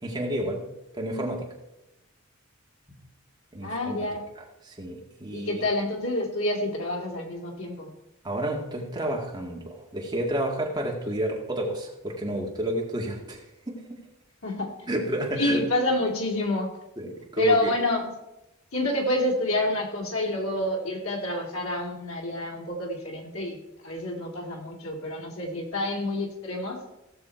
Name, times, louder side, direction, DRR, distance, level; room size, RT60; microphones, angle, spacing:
voice 1, 0.0-0.7 0.9-1.5 3.5-4.1 4.6-5.6 8.2-14.0 14.9-15.6 17.0-17.7, right 1 dB, 20° right, -1 dB, 2.0 m, -30 dB
voice 2, 3.6-4.2 5.3-7.9 14.4-14.7 15.3-16.7 17.4-18.1 18.7-26.8, left 1 dB, 90° left, 0 dB, 2.6 m, -28 dB
16.0 x 6.8 x 4.5 m, 0.93 s
head